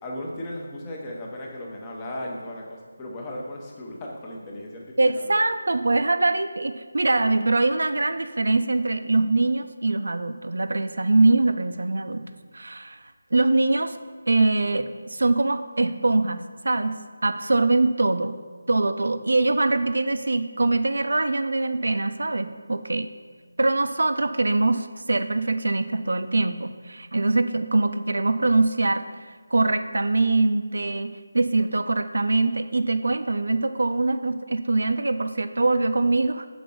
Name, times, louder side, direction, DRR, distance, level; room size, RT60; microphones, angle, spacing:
voice 1, 0.0-5.3, left 1 dB, 15° left, -2 dB, 0.8 m, -36 dB
voice 2, 5.0-12.2 12.5-13.0 13.3-14.0 14.3-17.0 17.2-18.4 18.7-23.1 23.6-29.0 29.5-36.5, right 2 dB, 75° right, 10 dB, 0.5 m, -23 dB
6.1 x 4.6 x 5.4 m, 1.5 s
figure-of-eight pair, 170°, 0 cm